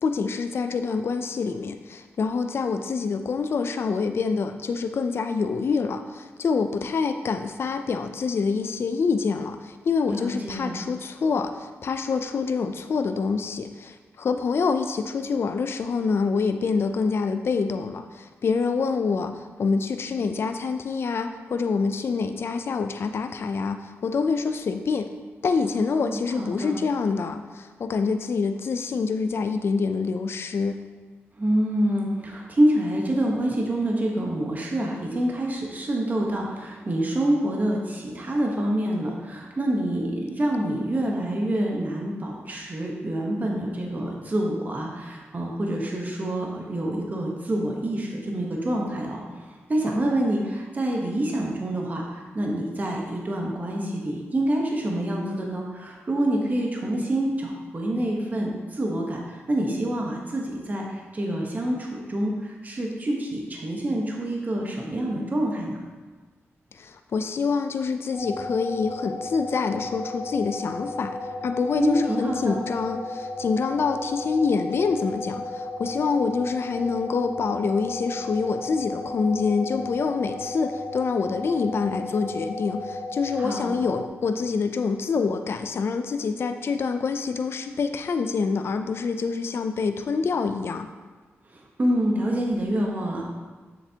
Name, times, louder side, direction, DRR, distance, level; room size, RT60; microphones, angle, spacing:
voice 1, 0.0-25.1 25.4-30.8 66.7-90.9, left 5 dB, 55° left, 8 dB, 0.3 m, -26 dB
voice 2, 10.1-10.8 25.8-26.8 31.4-65.8 71.8-72.6 83.4-83.7 91.5-93.2, right 1 dB, 35° right, -1 dB, 1.0 m, -27 dB
sound 1, 68.1-84.1, left 2 dB, 10° left, 1.1 m, -34 dB
7.2 x 6.8 x 2.8 m, 1.4 s
cardioid pair, 90°, 5 cm